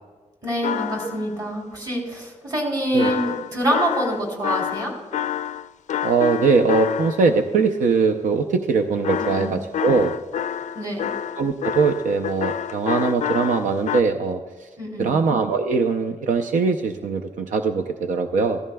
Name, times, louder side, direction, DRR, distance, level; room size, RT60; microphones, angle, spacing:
voice 1, 0.4-4.9 9.3-9.5 10.7-11.1 14.8-15.2, right 1 dB, 30° right, -1 dB, 3.3 m, -26 dB
sound 1, 0.6-1.3 3.0-7.4 9.0-14.0, left 9 dB, 70° left, 0.4 m, -28 dB
voice 2, 6.0-10.1 11.4-14.7 15.0-18.6, right 4 dB, 85° right, 6 dB, 0.6 m, -21 dB
15.0 x 14.5 x 2.3 m, 1.3 s
wide cardioid pair, 120°, 13 cm